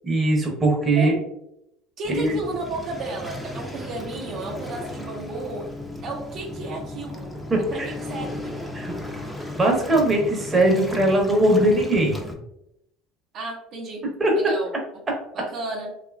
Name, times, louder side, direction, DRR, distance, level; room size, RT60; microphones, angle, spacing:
voice 1, 0.0-1.1 2.1-2.3 7.5-7.9 8.7-8.9 9.6-12.2 14.2-14.3, right 1 dB, 25° right, 0 dB, 0.8 m, -20 dB
Waves surf, 2.0-12.3, left 1 dB, 5° left, 0.5 m, -35 dB
voice 2, 2.0-5.7 6.0-7.3 7.7-8.6 13.3-14.0 14.3-14.7 15.3-15.9, right 2 dB, 55° right, -2 dB, 0.6 m, -33 dB
2.7 x 2.3 x 2.3 m, 0.80 s
supercardioid pair, 90°, 0 cm